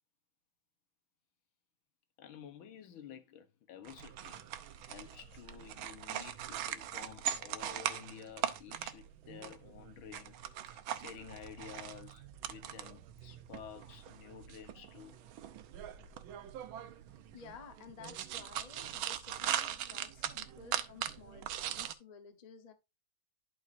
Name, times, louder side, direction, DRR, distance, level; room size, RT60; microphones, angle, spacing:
voice 1, 2.2-4.4 4.9-15.2, left 8 dB, 80° left, 1.8 m, -52 dB
sound 1, 3.9-21.9, right 10 dB, 80° right, 1.5 m, -41 dB
voice 2, 17.3-22.7, left 5 dB, 30° left, 0.7 m, -53 dB
11.0 x 5.4 x 2.6 m
omnidirectional pair, 2.2 m